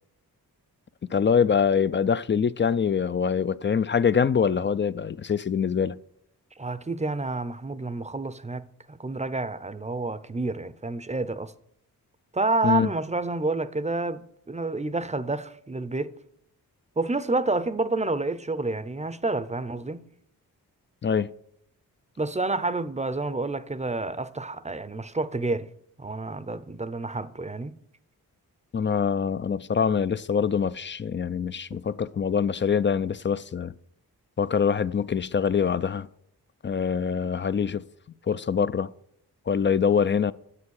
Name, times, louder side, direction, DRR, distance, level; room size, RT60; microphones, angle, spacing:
voice 1, 1.0-6.0 12.6-12.9 21.0-21.3 28.7-33.7 34.4-36.1 36.6-37.8 38.3-38.9 39.5-40.3, left 6 dB, 30° left, 0.4 m, -24 dB
voice 2, 6.6-11.5 12.3-16.1 17.0-20.1 22.2-25.7 26.0-27.7, right 3 dB, 20° right, 0.6 m, -29 dB
9.8 x 7.6 x 6.4 m
cardioid pair, 60°, 38 cm